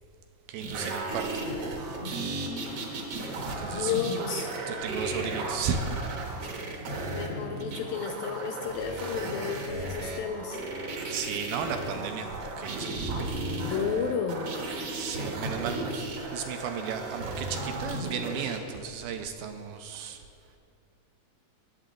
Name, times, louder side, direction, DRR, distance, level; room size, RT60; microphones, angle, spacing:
voice 1, 0.5-1.4 1.7-2.0 3.4-3.9 4.7-6.0 11.1-13.3 14.9-20.2, right 6 dB, 80° right, 6 dB, 2.2 m, -34 dB
sound 1, 0.6-18.6 19.9-20.0, right 2 dB, 65° right, 1.5 m, -35 dB
voice 2, 3.7-4.5 7.1-10.6 13.6-14.5, left 7 dB, 80° left, 4 dB, 2.1 m, -32 dB
19.5 x 7.6 x 3.8 m, 2.4 s
omnidirectional pair, 4.6 m